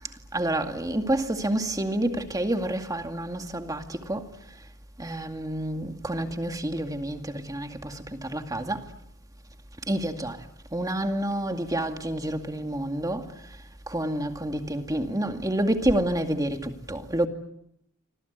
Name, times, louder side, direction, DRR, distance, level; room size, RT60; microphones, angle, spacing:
voice 1, 0.3-4.3 5.0-8.9 9.9-10.4 10.7-13.3 13.9-17.3, right 1 dB, 15° right, 2.2 m, -28 dB
28.5 x 25.5 x 8.2 m
head